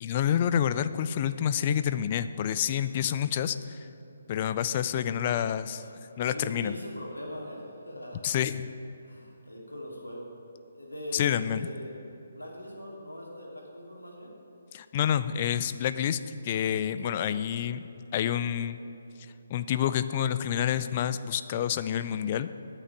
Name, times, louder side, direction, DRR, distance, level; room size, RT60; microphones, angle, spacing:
voice 1, 0.0-3.9 4.3-5.8 6.2-6.7 8.2-8.6 11.1-11.6 14.7-16.2 16.4-17.8 18.1-18.8 19.5-22.5, left 9 dB, 35° left, 13 dB, 0.4 m, -28 dB
voice 2, 6.2-8.4 9.0-10.3 10.7-12.0 12.3-14.3 17.0-17.3, left 1 dB, 85° left, -2 dB, 2.5 m, -41 dB
9.5 x 6.1 x 8.0 m, 2.9 s
figure-of-eight pair, 140°, 0 cm